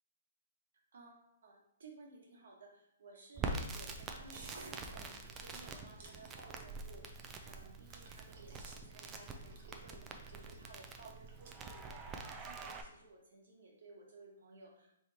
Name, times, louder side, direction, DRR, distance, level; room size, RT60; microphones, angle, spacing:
voice 1, 0.9-14.9, right 3 dB, 75° right, -1 dB, 1.3 m, -57 dB
Crackle, 3.4-12.8, right 3 dB, 15° right, 0.3 m, -45 dB
sound 1, 4.1-11.5, right 3 dB, 50° right, 0.9 m, -57 dB
3.4 x 2.9 x 4.0 m, 0.77 s
hypercardioid pair, 160°, 0 cm